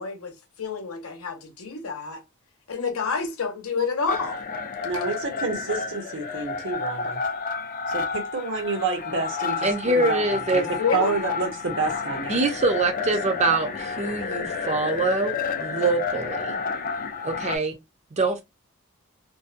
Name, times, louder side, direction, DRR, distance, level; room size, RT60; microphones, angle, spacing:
voice 1, 0.0-2.2 2.7-4.4 4.9-5.0 10.8-11.1, left 5 dB, 80° left, 0.7 m, -28 dB
sound 1, 4.1-17.6, left 5 dB, 40° left, 0.4 m, -30 dB
voice 2, 4.8-7.2 7.9-10.6 10.9-12.4, right 4 dB, 60° right, 0.8 m, -29 dB
voice 3, 9.6-10.7 12.3-16.6 17.2-17.7 18.1-18.4, right 3 dB, 30° right, 0.5 m, -24 dB
2.6 x 2.1 x 2.4 m
head